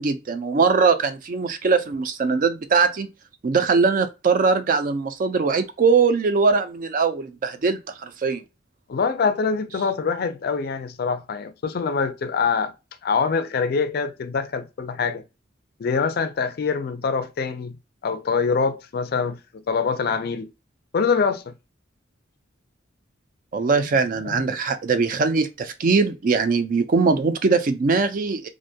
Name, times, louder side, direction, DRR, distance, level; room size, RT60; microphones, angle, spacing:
voice 1, 0.0-3.1 3.4-8.4 23.5-28.5, right 4 dB, 45° right, 0.3 m, -21 dB
voice 2, 8.9-12.7 13.0-15.2 15.8-17.8 18.0-20.5 20.9-21.5 24.2-24.4, left 5 dB, 50° left, 0.4 m, -24 dB
2.5 x 2.1 x 2.7 m
head